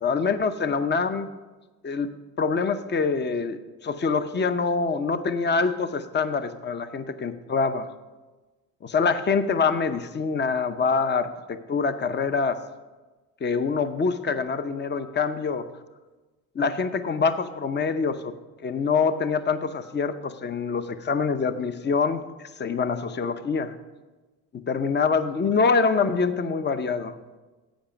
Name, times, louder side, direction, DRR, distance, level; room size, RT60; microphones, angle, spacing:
voice 1, 0.0-1.3 1.8-2.1 2.4-7.9 8.8-12.6 13.4-15.7 16.6-18.3 18.6-22.2 22.6-23.7 24.5-27.2, left 5 dB, 30° left, 10 dB, 0.7 m, -25 dB
11.5 x 8.0 x 5.1 m, 1.2 s
cardioid pair, 85°, 37 cm